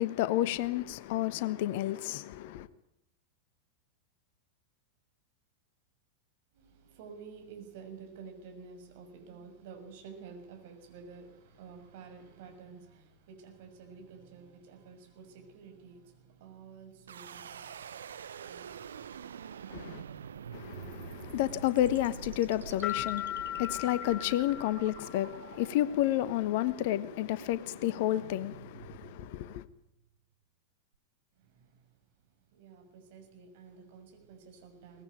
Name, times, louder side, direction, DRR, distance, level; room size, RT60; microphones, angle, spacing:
voice 1, 0.0-2.7 19.7-20.0 20.5-29.7, left 13 dB, 50° left, 1.2 m, -31 dB
voice 2, 6.5-18.9 31.3-31.9 32.5-35.0, right 5 dB, 50° right, 6.5 m, -51 dB
sound 1, 17.1-30.0, right 8 dB, 65° right, 1.0 m, -47 dB
sound 2, 22.8-25.5, left 12 dB, 25° left, 0.8 m, -38 dB
23.0 x 19.5 x 9.3 m
figure-of-eight pair, 90°, 0 cm